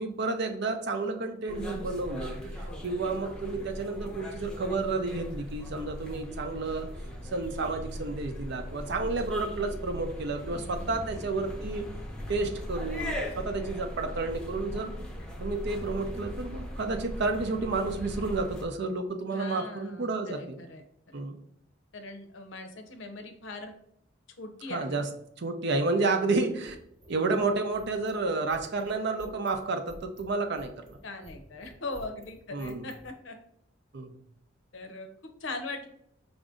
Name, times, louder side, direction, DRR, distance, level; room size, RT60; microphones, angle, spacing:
voice 1, 0.0-6.9 7.3-11.9 12.3-14.9 15.4-20.6 21.1-21.4 24.7-25.1 25.4-26.8 27.1-30.7 32.5-32.8 33.9-34.2, right 3 dB, 60° right, 6 dB, 0.6 m, -31 dB
sound 1, 1.5-18.6, equal, 5° left, 0.7 m, -39 dB
voice 2, 10.5-11.3 19.3-21.2 21.9-23.7 24.4-25.1 26.0-26.3 31.0-33.4 34.7-35.9, left 2 dB, 70° left, 6 dB, 0.7 m, -41 dB
sound 2, 26.2-33.1, equal, 30° right, 0.9 m, -51 dB
4.9 x 2.6 x 3.7 m, 0.72 s
head